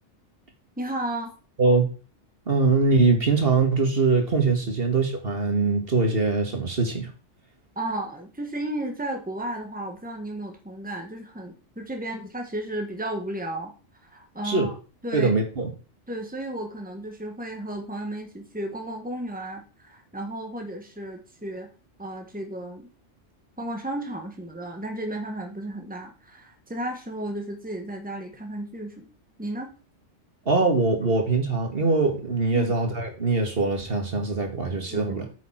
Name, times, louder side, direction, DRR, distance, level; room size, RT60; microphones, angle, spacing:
voice 1, 0.8-1.3 7.7-13.7 14.1-14.7 15.0-15.3 16.1-21.7 22.0-22.9 23.6-29.1 29.4-29.7 32.5-32.7 34.9-35.3, right 1 dB, 5° right, 3 dB, 1.7 m, -33 dB
voice 2, 1.6-1.9 2.5-7.1 14.4-14.7 15.1-15.7 30.5-35.3, right 3 dB, 55° right, 3 dB, 2.0 m, -22 dB
9.0 x 6.9 x 4.5 m, 0.36 s
omnidirectional pair, 1.2 m